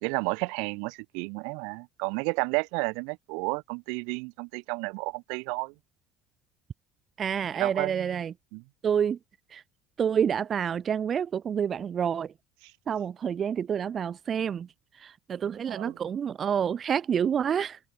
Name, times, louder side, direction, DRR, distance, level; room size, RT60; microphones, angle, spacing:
voice 1, 0.0-5.7 7.6-8.1 8.5-8.6 12.6-12.7 15.7-16.0, right 36 dB, 70° right, 0.7 m, -32 dB
voice 2, 7.2-8.3 8.8-9.2 9.5-9.6 10.0-12.3 12.9-14.7 15.0-17.8, right 8 dB, 25° right, 0.3 m, -28 dB
open air
cardioid pair, 170°, 0 cm